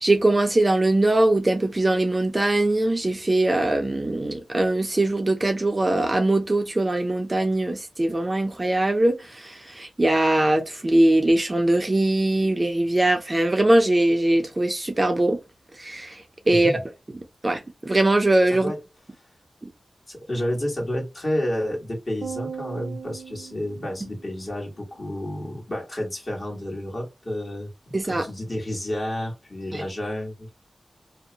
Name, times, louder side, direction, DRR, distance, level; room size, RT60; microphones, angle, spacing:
voice 1, 0.0-15.4 15.7-16.8 17.4-18.7 27.9-28.3 29.7-29.8, right 1 dB, 30° right, 0.5 m, -21 dB
voice 2, 16.5-16.8 18.5-18.8 20.1-30.5, left 1 dB, 40° left, 1.3 m, -30 dB
sound 1, 22.2-24.6, right 6 dB, 80° right, 0.6 m, -38 dB
2.6 x 2.1 x 2.7 m
wide cardioid pair, 85°, 0 cm